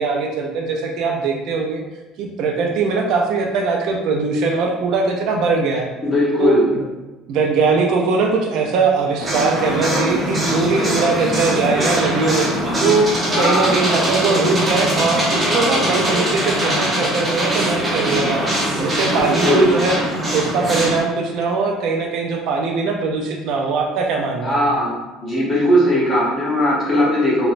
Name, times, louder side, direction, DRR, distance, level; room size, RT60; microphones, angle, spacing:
voice 1, 0.0-1.8 2.2-5.9 6.4-6.9 7.3-12.5 12.8-13.1 13.4-18.4 18.8-19.9 20.3-24.6, right 4 dB, 55° right, 2 dB, 0.3 m, -20 dB
voice 2, 6.0-6.7 13.3-13.7 19.2-19.7 24.4-24.9 25.2-27.5, equal, 25° left, -6 dB, 0.7 m, -18 dB
sound 1, 9.2-21.0, equal, 10° right, 0.6 m, -21 dB
2.9 x 2.1 x 2.5 m, 1.1 s
cardioid pair, 170°, 0 cm